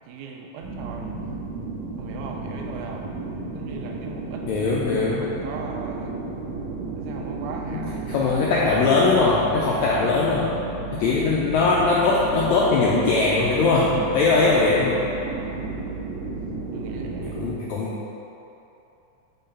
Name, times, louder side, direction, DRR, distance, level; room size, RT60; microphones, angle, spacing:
voice 1, 0.1-1.1 2.0-3.1 3.5-4.7 5.0-6.1 6.9-8.3 9.3-9.9 10.9-11.3 15.2-16.0 16.7-17.4, right 5 dB, 80° right, 1 dB, 1.8 m, -39 dB
sound 1, 0.6-17.5, right 3 dB, 50° right, 1.9 m, -33 dB
voice 2, 4.5-5.3 7.7-10.5 10.9-15.0 17.2-18.0, left 3 dB, 90° left, -5 dB, 1.6 m, -21 dB
5.1 x 3.8 x 5.6 m, 2.9 s
omnidirectional pair, 3.8 m